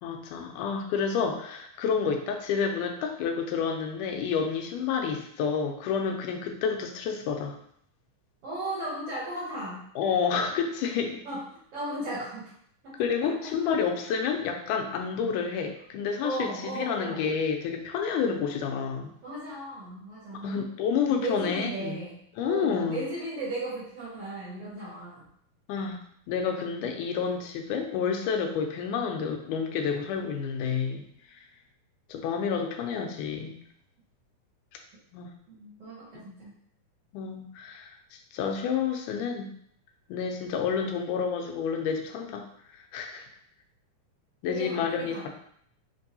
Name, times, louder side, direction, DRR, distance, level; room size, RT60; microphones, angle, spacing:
voice 1, 0.0-7.6 10.0-11.2 13.0-19.1 20.4-22.0 22.4-23.0 25.7-26.0 26.3-31.0 32.1-33.6 35.1-35.3 37.1-38.0 38.3-39.5 40.1-42.5 42.9-43.2 44.4-45.3, left 6 dB, 85° left, 4 dB, 2.1 m, -29 dB
voice 2, 8.4-9.8 11.2-12.5 12.8-13.5 13.8-13.9 16.2-17.3 19.2-20.6 21.2-22.2 22.4-25.3 35.5-36.5 44.5-45.3, right 2 dB, 65° right, -7 dB, 1.5 m, -36 dB
5.2 x 2.6 x 2.7 m, 0.66 s
omnidirectional pair, 3.6 m